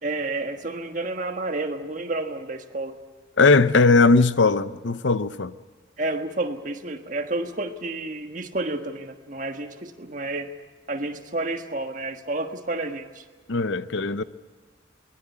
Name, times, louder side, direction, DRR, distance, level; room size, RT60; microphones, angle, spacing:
voice 1, 0.0-2.9 6.0-10.5 10.9-13.2, right 2 dB, 40° right, 1.5 m, -30 dB
voice 2, 3.4-5.5 13.5-14.2, left 3 dB, 70° left, 0.7 m, -19 dB
23.0 x 20.5 x 8.4 m
head